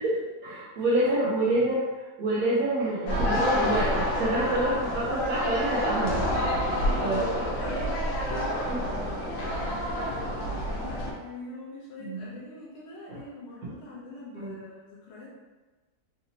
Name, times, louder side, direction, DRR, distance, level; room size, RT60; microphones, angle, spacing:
voice 1, 0.0-1.8 2.2-6.3 7.0-7.3 8.7-8.8 9.4-9.7 12.0-12.4 13.1-13.2 13.6-13.7 14.3-14.5, right 1 dB, 70° right, -8 dB, 1.1 m, -27 dB
voice 2, 0.8-1.1 6.7-8.7 9.9-15.3, left 2 dB, 50° left, -6 dB, 0.9 m, -44 dB
sound 1, 3.1-11.1, equal, 80° left, 1.3 m, -28 dB
3.9 x 2.7 x 2.7 m, 1.2 s
omnidirectional pair, 1.6 m